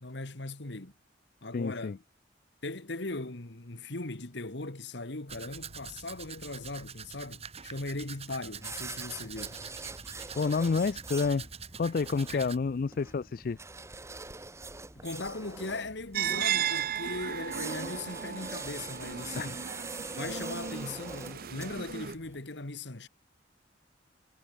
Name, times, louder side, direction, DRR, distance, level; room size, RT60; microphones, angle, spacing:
voice 1, 0.0-0.9 1.4-2.0 2.6-9.6 12.3-12.5 15.0-19.6 20.2-23.1, left 2 dB, 65° left, 1.8 m, -39 dB
voice 2, 1.5-2.0 10.3-11.5 11.8-13.6 19.3-19.5, left 4 dB, 50° left, 0.4 m, -29 dB
Domestic sounds home sounds, 5.3-12.6, right 7 dB, 35° right, 3.3 m, -45 dB
sound 1, 8.5-22.4, right 3 dB, 15° right, 1.3 m, -44 dB
sound 2, 16.1-22.1, right 9 dB, 50° right, 0.6 m, -35 dB
head